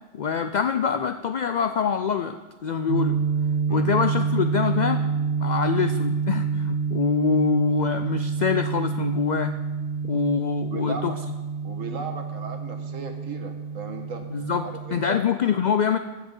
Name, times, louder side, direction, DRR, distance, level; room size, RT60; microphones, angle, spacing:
voice 1, 0.1-3.2 3.7-5.1 5.4-9.6 10.0-11.1 14.3-16.0, left 6 dB, 90° left, 9 dB, 0.4 m, -25 dB
sound 1, 2.9-15.2, right 6 dB, 65° right, 0.9 m, -27 dB
voice 2, 10.7-11.1 11.6-14.2 14.6-15.3, right 4 dB, 85° right, 4 dB, 1.6 m, -36 dB
14.5 x 5.9 x 5.4 m, 1.2 s
omnidirectional pair, 1.3 m